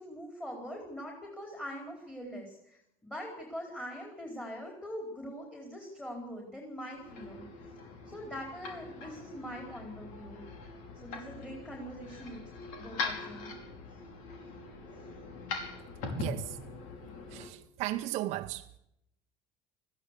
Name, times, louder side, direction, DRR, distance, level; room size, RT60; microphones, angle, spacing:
voice 1, 0.0-7.4 8.1-10.4 11.0-12.4 12.8-13.5, equal, 10° left, 4.5 m, -43 dB
sound 1, 6.9-17.5, left 4 dB, 75° left, 5.1 m, -42 dB
voice 2, 16.1-16.6 17.3-18.7, right 15 dB, 60° right, 0.9 m, -35 dB
21.0 x 15.0 x 8.4 m
cardioid pair, 145°, 13 cm